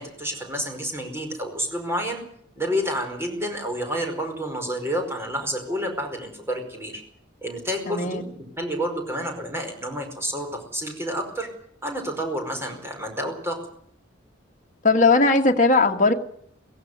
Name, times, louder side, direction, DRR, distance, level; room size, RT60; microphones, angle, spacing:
voice 1, 0.0-2.2 2.6-7.0 7.4-11.5 11.8-13.6, equal, 15° right, 3 dB, 5.0 m, -29 dB
voice 2, 7.9-8.2 14.8-16.1, left 3 dB, 40° left, 3 dB, 1.8 m, -18 dB
17.5 x 16.5 x 9.6 m, 0.68 s
head